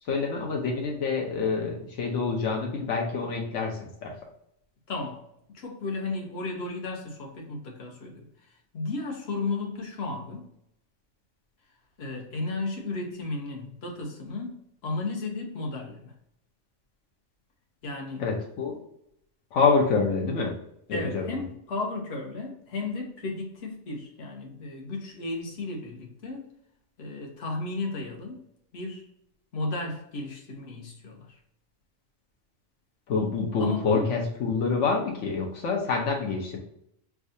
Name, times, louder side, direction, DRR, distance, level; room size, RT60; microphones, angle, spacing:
voice 1, 0.0-4.1 18.2-18.8 19.5-20.6 20.9-21.3 33.1-36.6, left 4 dB, 80° left, 0 dB, 1.1 m, -27 dB
voice 2, 4.9-5.2 5.5-10.5 12.0-16.1 17.8-18.2 20.9-26.5 27.0-28.4 28.7-29.1 29.5-31.4 33.6-34.1, left 3 dB, 60° left, 1 dB, 1.1 m, -34 dB
4.6 x 2.3 x 2.6 m, 0.75 s
omnidirectional pair, 1.3 m